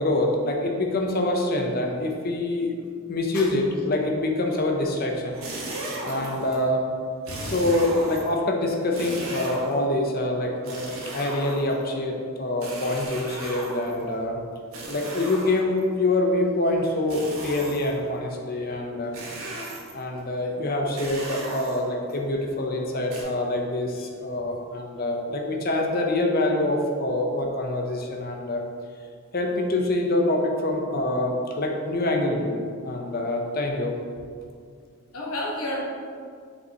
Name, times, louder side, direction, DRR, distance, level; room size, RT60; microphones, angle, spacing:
voice 1, 0.0-2.7 3.1-5.4 6.0-6.8 7.4-14.4 14.9-19.1 19.9-28.6 29.3-34.0, left 1 dB, 40° left, 1 dB, 0.7 m, -25 dB
sound 1, 5.3-6.6 7.2-8.4 8.9-9.9 10.6-11.9 12.6-14.0 14.7-15.8 17.1-18.0 19.1-20.1 20.9-22.1 23.1-23.2, right 1 dB, 70° right, 1.3 m, -36 dB
voice 2, 7.3-7.6 35.1-35.8, left 1 dB, 75° left, -3 dB, 1.2 m, -31 dB
6.5 x 5.2 x 2.9 m, 2.2 s
head